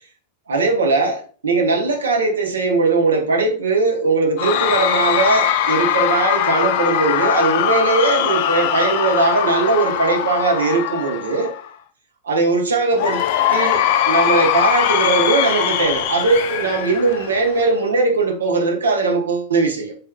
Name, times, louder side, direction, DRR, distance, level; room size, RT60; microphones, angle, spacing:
voice 1, 0.5-11.5 12.2-13.2 13.5-20.0, right 3 dB, 70° right, 0.8 m, -19 dB
Cheering / Crowd, 4.4-11.7 13.0-17.7, left 10 dB, 50° left, 0.4 m, -21 dB
4.3 x 3.4 x 2.2 m
figure-of-eight pair, 90°, 0 cm